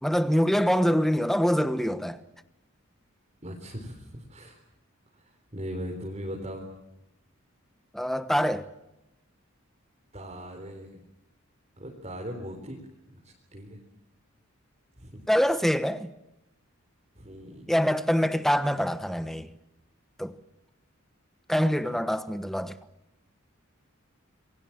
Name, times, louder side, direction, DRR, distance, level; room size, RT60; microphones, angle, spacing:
voice 1, 0.0-2.2 7.9-8.7 15.3-16.1 17.7-19.5 20.2-20.4 21.5-22.8, equal, ahead, 1.2 m, -25 dB
voice 2, 3.4-4.6 5.5-6.7 10.1-11.0 11.8-12.8 13.5-13.8 15.0-15.2 17.2-17.7, equal, 30° right, 4.0 m, -39 dB
28.0 x 23.0 x 7.3 m
head